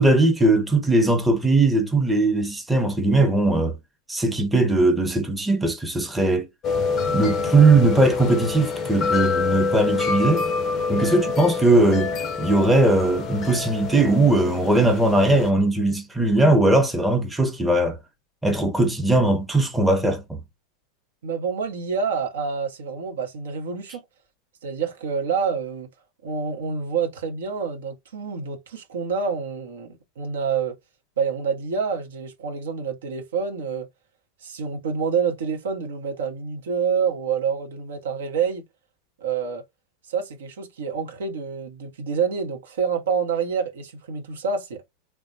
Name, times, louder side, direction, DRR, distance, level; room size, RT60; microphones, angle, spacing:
voice 1, 0.0-3.8 4.1-6.5 7.1-10.5 10.9-18.0 18.4-20.4, right 2 dB, 5° right, 0.7 m, -19 dB
sound 1, 6.6-15.5, left 4 dB, 30° left, 0.5 m, -26 dB
voice 2, 21.2-24.0 24.6-25.9 26.2-30.8 31.2-33.9 34.4-38.6 39.2-39.6 40.1-44.8, right 6 dB, 60° right, 0.7 m, -27 dB
3.2 x 2.1 x 2.6 m
figure-of-eight pair, 90°, 0 cm